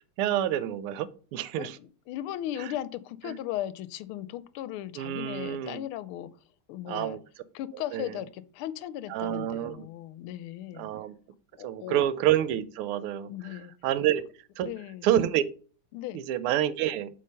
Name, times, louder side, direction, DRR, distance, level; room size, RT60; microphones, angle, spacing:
voice 1, 0.2-1.8 2.6-2.7 5.0-5.8 6.9-7.2 7.9-8.1 9.1-9.9 10.7-11.2 11.6-13.3 13.8-14.2 14.6-14.7 15.0-15.4 16.1-17.1, right 11 dB, 80° right, 15 dB, 1.5 m, -28 dB
voice 2, 1.6-6.3 6.7-7.2 7.5-10.9 11.6-12.1 13.3-13.7 14.6-15.1 15.9-16.2, left 12 dB, 80° left, 15 dB, 1.4 m, -37 dB
7.7 x 3.5 x 5.4 m, 0.39 s
omnidirectional pair, 2.4 m